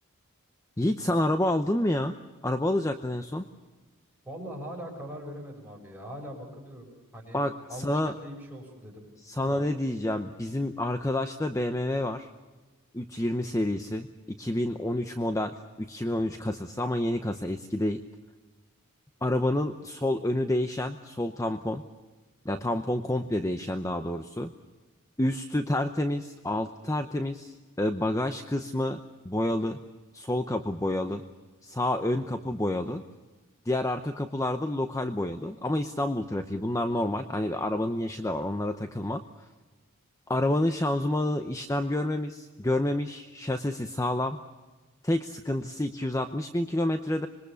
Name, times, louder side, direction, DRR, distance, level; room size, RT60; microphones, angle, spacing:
voice 1, 0.8-2.1 2.4-3.4 7.3-8.1 9.2-12.3 12.9-14.1 14.4-18.0 19.2-21.8 22.4-24.5 25.2-29.8 30.1-31.2 31.6-33.0 33.7-39.2 40.3-44.4 45.0-47.3, left 1 dB, 15° left, 8 dB, 0.8 m, -29 dB
voice 2, 4.2-9.1 9.3-9.7 15.0-15.2, equal, 10° right, -2 dB, 6.8 m, -42 dB
26.0 x 22.0 x 6.9 m, 1.3 s
head